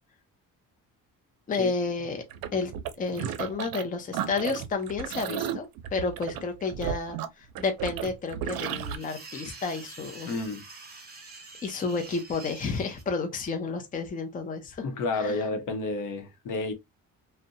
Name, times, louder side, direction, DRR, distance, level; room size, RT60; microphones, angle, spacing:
voice 1, 1.5-2.2 2.5-2.7 3.0-10.3 11.6-14.9 15.1-15.4, left 4 dB, 25° left, 0.5 m, -31 dB
sound 1, 2.3-3.8 4.1-9.0, right 9 dB, 85° right, 0.5 m, -34 dB
sound 2, 8.7-13.0, right 3 dB, 30° right, 0.8 m, -46 dB
voice 2, 10.3-10.6 14.8-16.7, left 3 dB, 65° left, 0.8 m, -30 dB
2.5 x 2.1 x 2.6 m
cardioid pair, 135°, 34 cm